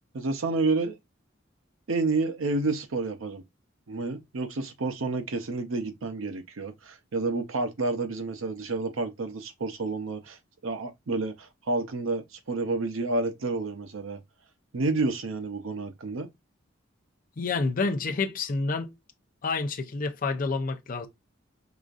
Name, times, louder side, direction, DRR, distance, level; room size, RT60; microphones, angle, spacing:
voice 1, 0.1-1.0 1.9-3.4 3.9-14.2 14.7-16.3, right 3 dB, 90° right, 0.7 m, -30 dB
voice 2, 17.4-18.9 19.4-21.1, left 3 dB, 45° left, 0.5 m, -28 dB
4.9 x 2.5 x 2.4 m
head